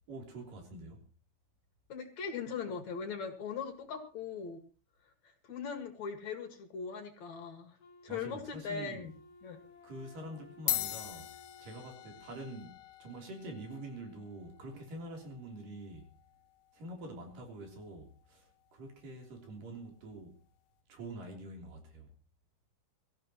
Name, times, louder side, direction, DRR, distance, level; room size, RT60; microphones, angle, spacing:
voice 1, 0.1-1.1 8.1-9.1 9.8-11.3 11.6-16.1 16.7-20.4 20.9-22.1, right 1 dB, 75° right, 5.0 m, -46 dB
voice 2, 1.9-4.6 5.2-7.8 8.0-9.1 9.4-9.6, left 6 dB, 60° left, 3.0 m, -40 dB
Wind instrument woodwind instrument, 7.8-12.8, left 2 dB, 35° left, 2.3 m, -58 dB
sound 1, 9.1-9.3 10.2-10.3 10.5-19.2, left 12 dB, 75° left, 2.7 m, -43 dB
24.0 x 14.5 x 3.0 m
omnidirectional pair, 3.9 m